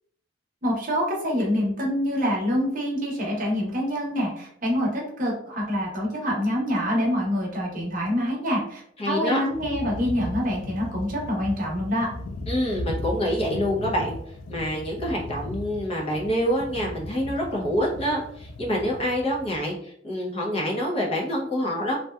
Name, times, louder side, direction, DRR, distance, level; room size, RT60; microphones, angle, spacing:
voice 1, 0.6-12.1, equal, 45° right, -2 dB, 0.8 m, -26 dB
voice 2, 9.0-9.4 12.5-14.2 14.5-22.0, equal, 30° left, -2 dB, 0.6 m, -26 dB
sound 1, 9.5-19.7, left 2 dB, 90° left, 0.3 m, -37 dB
2.7 x 2.2 x 2.2 m, 0.69 s
head